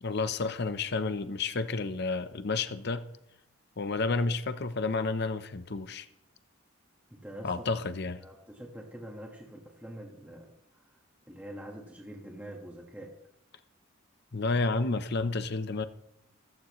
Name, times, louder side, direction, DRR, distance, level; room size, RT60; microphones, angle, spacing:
voice 1, 0.0-3.1 3.8-6.1 7.4-8.2 14.3-15.9, left 3 dB, 55° left, 11 dB, 0.8 m, -30 dB
voice 2, 7.1-7.6 8.2-10.5 10.9-11.0 11.3-13.1, right 1 dB, 10° right, -1 dB, 1.6 m, -45 dB
15.5 x 14.5 x 3.2 m, 0.82 s
head